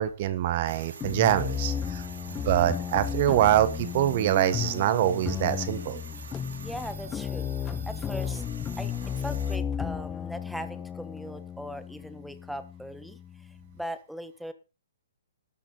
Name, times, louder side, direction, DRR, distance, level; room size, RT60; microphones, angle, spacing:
voice 1, 0.0-2.1 2.4-6.0, right 12 dB, 45° right, 13 dB, 1.3 m, -24 dB
sound 1, 0.7-9.6, right 5 dB, 75° right, 3.5 m, -46 dB
sound 2, 1.0-13.8, left 8 dB, 15° left, 0.5 m, -34 dB
voice 2, 6.6-7.5 7.9-8.4 8.8-13.5 13.7-14.5, equal, ahead, 11 dB, 1.4 m, -39 dB
13.0 x 11.5 x 4.0 m, 0.30 s
hypercardioid pair, 140°, 0 cm